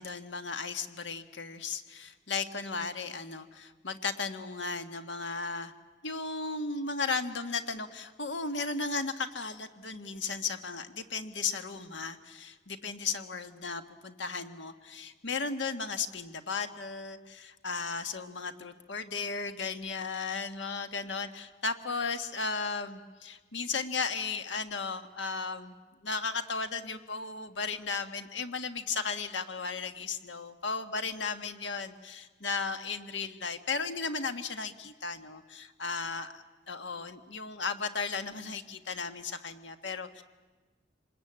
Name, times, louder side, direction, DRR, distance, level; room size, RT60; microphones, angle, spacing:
voice 1, 0.0-5.7 6.0-25.8 26.0-40.2, left 4 dB, 80° left, 8 dB, 1.5 m, -35 dB
26.5 x 21.0 x 8.7 m, 1.3 s
head